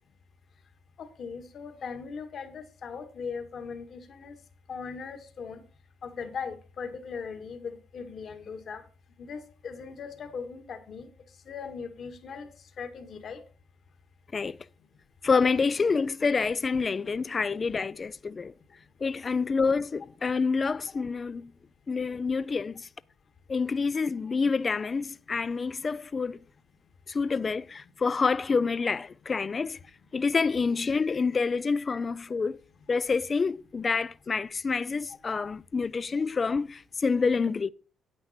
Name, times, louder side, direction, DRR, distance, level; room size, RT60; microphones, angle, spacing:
voice 1, 1.0-4.4 4.7-5.6 6.0-8.8 9.2-11.1 11.5-12.5 12.8-13.4, left 5 dB, 55° left, 1.8 m, -39 dB
voice 2, 15.2-18.5 19.0-21.5 21.9-22.9 23.5-26.4 27.1-29.8 30.1-32.6 32.9-37.7, left 4 dB, 35° left, 0.4 m, -27 dB
9.5 x 8.9 x 4.3 m
cardioid pair, 90°, 0 cm